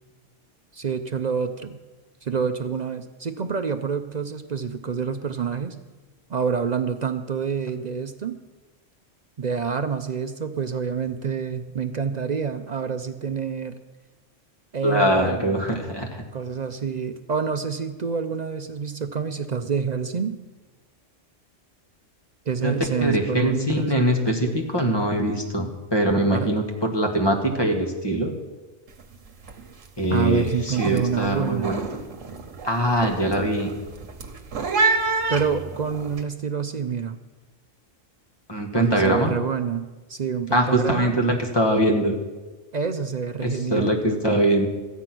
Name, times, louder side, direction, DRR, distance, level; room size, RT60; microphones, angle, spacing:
voice 1, 0.7-1.8 2.2-5.8 6.3-8.4 9.4-13.8 14.7-15.6 16.3-20.4 22.5-23.9 26.3-26.5 30.1-31.7 35.3-37.2 38.7-41.1 42.7-43.9, right 6 dB, 50° right, 8 dB, 0.5 m, -27 dB
voice 2, 14.8-16.2 22.6-22.7 23.0-28.3 30.0-31.8 32.6-33.7 38.5-39.3 40.5-42.2 43.4-44.7, right 1 dB, 20° left, 3 dB, 1.6 m, -22 dB
sound 1, 28.9-29.2 29.4-29.9 30.3-36.2, right 4 dB, 75° right, 1.5 m, -28 dB
14.0 x 9.7 x 6.0 m, 1.2 s
omnidirectional pair, 1.3 m